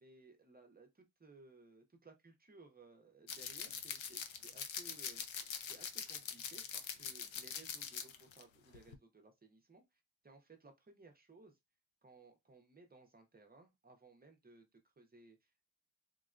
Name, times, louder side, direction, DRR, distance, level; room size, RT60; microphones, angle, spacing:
voice 1, 0.0-9.8 10.2-11.6 12.0-15.7, right 3 dB, 20° right, 0.5 m, -61 dB
sound 1, 3.3-8.4 8.7-9.0, left 7 dB, 80° left, 0.5 m, -44 dB
3.6 x 2.1 x 2.4 m
wide cardioid pair, 175°, 46 cm